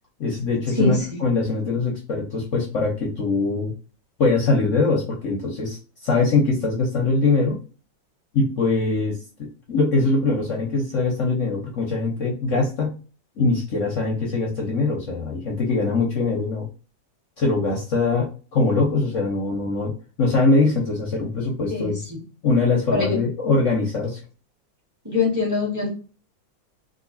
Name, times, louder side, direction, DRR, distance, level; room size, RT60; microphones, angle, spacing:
voice 1, 0.2-3.7 4.2-7.6 8.3-13.0 13.4-16.7 17.4-19.9 20.2-22.1 22.4-24.2, left 3 dB, 55° left, -1 dB, 0.9 m, -22 dB
voice 2, 0.7-1.2 21.7-21.9 22.9-23.2 25.0-25.9, left 4 dB, 15° right, -3 dB, 0.8 m, -23 dB
3.9 x 2.5 x 2.6 m, 0.35 s
omnidirectional pair, 2.1 m